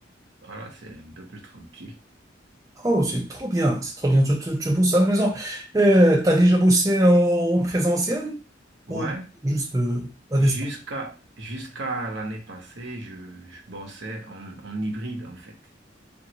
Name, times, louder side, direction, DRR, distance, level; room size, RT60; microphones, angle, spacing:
voice 1, 0.4-1.9 8.9-9.3 10.4-15.6, right 2 dB, 75° right, 0.9 m, -35 dB
voice 2, 2.8-8.4 8.9-9.1 9.4-10.5, right 1 dB, 20° right, 0.6 m, -20 dB
2.9 x 2.6 x 2.9 m
head